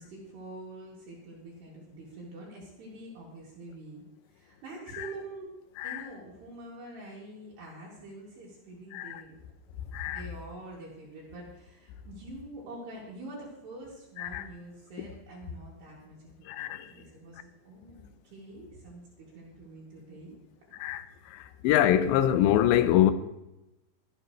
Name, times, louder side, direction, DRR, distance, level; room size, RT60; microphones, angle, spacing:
voice 1, 0.0-4.0 4.3-5.5 5.8-9.4 10.0-20.3 21.1-21.3, right 2 dB, 65° right, 4.4 m, -46 dB
voice 2, 16.5-16.9 20.8-21.0 21.3-23.1, left 11 dB, 80° left, 3.0 m, -24 dB
22.0 x 9.2 x 3.2 m
omnidirectional pair, 5.3 m